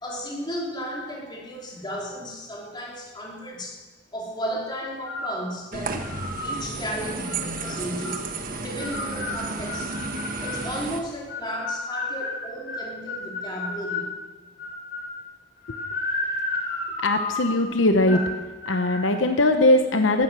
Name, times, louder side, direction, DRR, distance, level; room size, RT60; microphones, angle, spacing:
voice 1, 0.0-3.8 4.1-6.0 6.4-9.9 10.4-14.2 18.1-18.2, equal, 25° left, -3 dB, 3.4 m, -34 dB
sound 1, 5.0-5.5 6.0-6.6 7.2-8.2 8.8-10.7 11.3-14.1 14.6-15.2 15.6-17.6 18.1-18.4 18.6-19.1, left 2 dB, 60° left, 3.3 m, -32 dB
sound 2, 5.7-11.0, right 3 dB, 50° right, 1.4 m, -32 dB
voice 2, 17.0-18.2 18.7-20.2, left 2 dB, 75° left, 6 dB, 1.0 m, -20 dB
16.0 x 13.0 x 6.2 m, 1.3 s
head